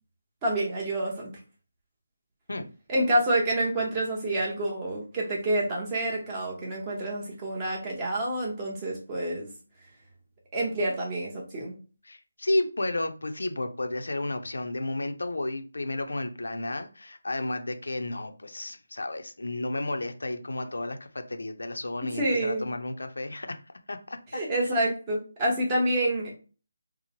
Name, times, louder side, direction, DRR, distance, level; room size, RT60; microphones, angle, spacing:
voice 1, 0.4-1.3 2.9-9.5 10.5-11.7 22.0-22.7 24.3-26.3, right 1 dB, 20° right, -3 dB, 0.9 m, -28 dB
voice 2, 12.0-23.6 23.9-24.4, left 2 dB, 80° left, 7 dB, 0.5 m, -32 dB
2.9 x 2.0 x 2.9 m, 0.36 s
figure-of-eight pair, 165°, 0 cm